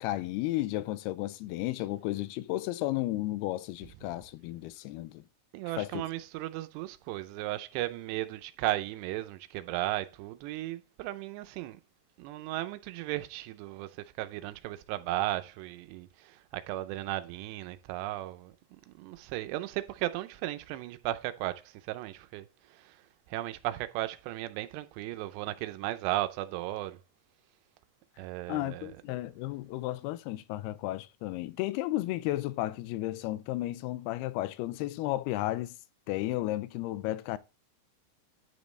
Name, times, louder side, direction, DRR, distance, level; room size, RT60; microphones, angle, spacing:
voice 1, 0.0-5.2 5.8-6.0 28.5-35.8 36.1-37.4, left 16 dB, 80° left, 2.4 m, -33 dB
voice 2, 5.5-11.8 12.2-13.9 14.2-18.5 18.9-23.0 23.3-27.0 28.2-28.9, right 15 dB, 90° right, 2.8 m, -35 dB
10.0 x 5.2 x 3.2 m
omnidirectional pair, 4.8 m